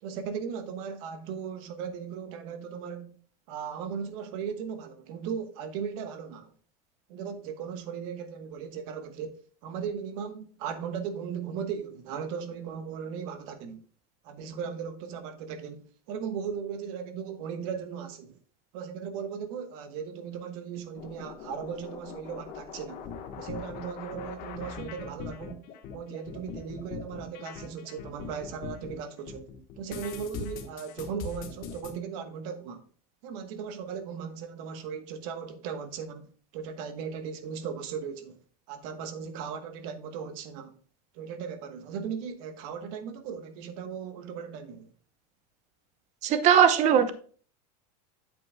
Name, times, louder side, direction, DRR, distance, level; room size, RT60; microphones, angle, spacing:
voice 1, 0.0-3.1 3.5-6.5 7.1-13.8 14.2-18.4 18.7-23.1 23.4-29.5 29.8-32.8 33.2-38.4 38.7-40.7 41.1-44.9, right 7 dB, 65° right, 1.2 m, -37 dB
sound 1, 21.0-29.0 29.3-31.9, left 6 dB, 45° left, 1.3 m, -41 dB
voice 2, 46.2-47.1, right 8 dB, 35° right, 0.8 m, -20 dB
8.8 x 7.7 x 2.2 m
supercardioid pair, 150°, 20 cm